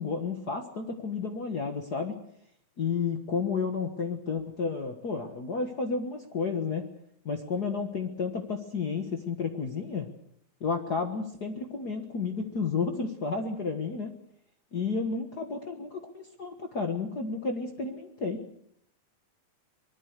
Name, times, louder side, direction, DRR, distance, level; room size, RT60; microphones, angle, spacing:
voice 1, 0.0-2.2 2.8-6.9 7.2-10.1 10.6-14.1 14.7-18.5, left 4 dB, 60° left, 5 dB, 1.0 m, -31 dB
25.0 x 20.5 x 6.7 m, 0.68 s
omnidirectional pair, 4.1 m